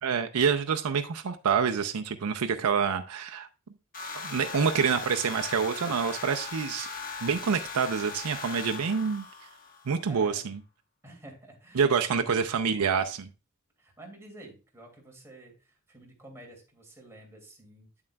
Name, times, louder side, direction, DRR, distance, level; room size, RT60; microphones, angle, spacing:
voice 1, 0.0-3.5 4.2-6.9 7.2-9.2 9.9-10.6 11.7-13.3, right 6 dB, 90° right, 0.5 m, -27 dB
sound 1, 3.9-10.1, left 4 dB, 40° left, 1.2 m, -39 dB
voice 2, 10.1-10.4 11.0-12.9 13.8-17.9, right 1 dB, 10° right, 2.3 m, -50 dB
8.8 x 7.3 x 2.2 m
head